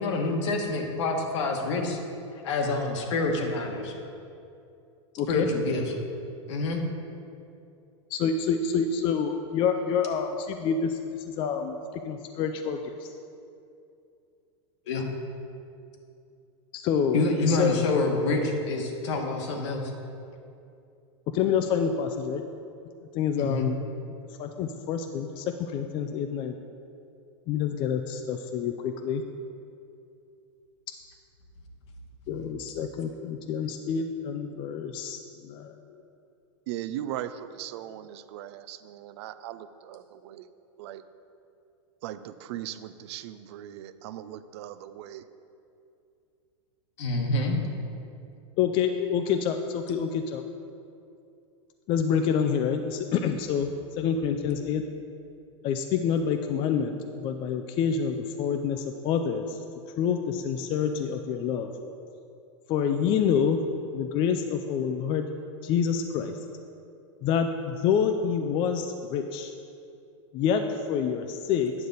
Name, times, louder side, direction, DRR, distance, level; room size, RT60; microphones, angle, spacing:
voice 1, 0.0-2.0 2.4-3.9 5.3-5.9 6.5-6.8 14.9-15.1 17.1-19.9 23.4-23.7 47.0-47.6, left 2 dB, 70° left, 3 dB, 1.3 m, -27 dB
voice 2, 5.2-5.5 8.1-11.0 11.2-11.8 12.0-13.1 16.7-17.8 21.3-22.4 23.1-23.8 24.4-26.5 27.5-29.2 32.3-35.7 48.6-50.4 51.9-53.7 54.0-54.8 55.6-59.6 60.0-61.7 62.7-63.6 63.9-65.3 65.6-66.3 67.2-69.5 70.3-70.6 70.9-71.7, left 7 dB, 30° left, 6 dB, 0.4 m, -27 dB
voice 3, 36.7-40.5 40.8-41.0 42.0-45.3, right 12 dB, 60° right, 13 dB, 0.4 m, -38 dB
9.5 x 6.6 x 4.0 m, 2.6 s
supercardioid pair, 140°, 16 cm